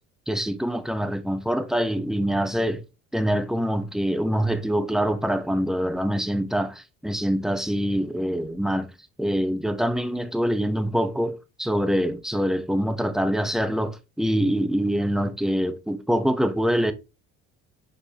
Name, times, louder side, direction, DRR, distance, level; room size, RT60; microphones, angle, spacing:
voice 1, 0.3-2.8 3.1-8.9 9.2-16.9, equal, ahead, 0.9 m, -25 dB
6.8 x 4.9 x 2.8 m
supercardioid pair, 85°, 31 cm